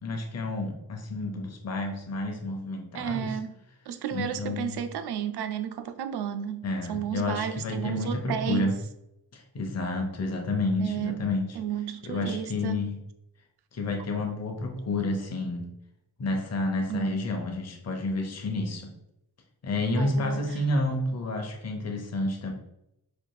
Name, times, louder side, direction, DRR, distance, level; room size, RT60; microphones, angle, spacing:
voice 1, 0.0-3.4 4.1-4.8 6.6-8.8 9.3-11.6 12.0-13.0 13.7-15.7 16.2-18.9 19.6-22.5, left 2 dB, 40° left, 3 dB, 0.7 m, -30 dB
voice 2, 2.9-3.5 3.9-8.7 10.8-11.2 11.6-12.8 16.9-17.2 19.9-20.4, right 9 dB, 90° right, 9 dB, 0.5 m, -32 dB
4.2 x 2.4 x 4.8 m, 0.85 s
wide cardioid pair, 170°, 38 cm